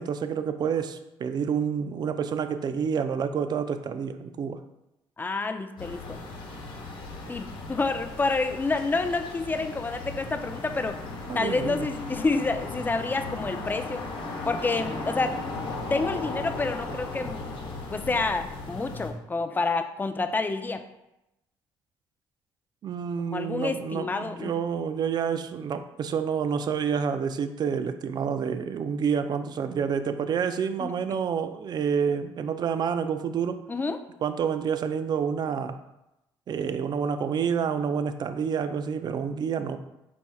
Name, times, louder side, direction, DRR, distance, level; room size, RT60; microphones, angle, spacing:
voice 1, 0.0-4.6 11.3-11.9 22.8-33.6 34.2-35.8 36.5-39.8, right 7 dB, 45° right, 10 dB, 0.4 m, -28 dB
voice 2, 5.2-6.2 7.3-11.0 11.3-14.0 14.5-15.4 15.9-17.5 17.9-20.8 23.3-24.5 30.8-31.2 33.7-34.0, left 3 dB, 20° left, 7 dB, 0.4 m, -28 dB
sound 1, 5.8-19.1, left 3 dB, 55° left, 1.0 m, -36 dB
4.3 x 4.2 x 2.3 m, 0.90 s
supercardioid pair, 80°, 10 cm